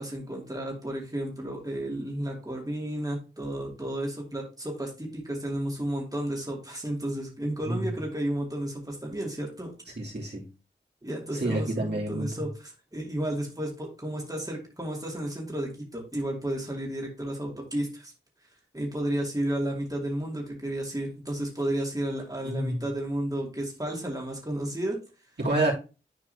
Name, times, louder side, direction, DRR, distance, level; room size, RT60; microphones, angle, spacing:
voice 1, 0.0-9.7 11.0-18.1 18.7-25.0, right 1 dB, 15° right, 2.6 m, -32 dB
voice 2, 10.0-10.4 11.3-12.3 22.4-22.8 25.4-25.7, right 2 dB, 60° right, 3.1 m, -28 dB
11.0 x 4.6 x 2.8 m
wide cardioid pair, 40°, 20 cm